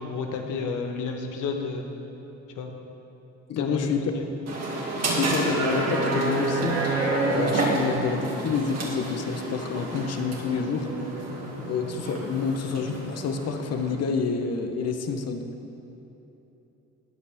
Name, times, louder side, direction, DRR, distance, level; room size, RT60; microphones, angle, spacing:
voice 1, 0.0-1.8 2.6-2.7 3.6-4.2, left 4 dB, 90° left, 3 dB, 1.3 m, -31 dB
voice 2, 3.5-4.1 5.1-6.9 7.3-10.9 11.6-15.5, left 5 dB, 55° left, 6 dB, 1.0 m, -28 dB
sound 1, 4.5-13.9, right 2 dB, 60° right, 2.5 m, -28 dB
14.5 x 9.2 x 3.6 m, 3.0 s
cardioid pair, 90°, 30 cm